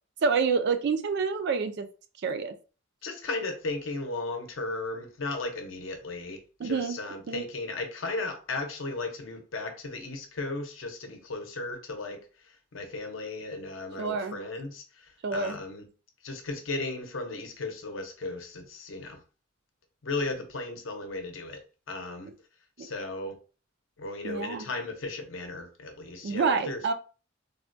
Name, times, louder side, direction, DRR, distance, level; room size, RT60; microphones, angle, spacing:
voice 1, 0.2-1.9 2.2-2.5 6.6-7.0 7.3-7.4 14.0-14.4 15.2-15.6 22.8-22.9 24.2-24.7 26.2-26.9, right 5 dB, 55° right, 0.3 m, -28 dB
voice 2, 3.0-12.2 12.7-15.9 16.2-19.2 20.0-21.6 21.9-22.3 22.8-23.4 24.0-26.8, left 2 dB, 70° left, 0.7 m, -35 dB
3.5 x 2.1 x 2.5 m
head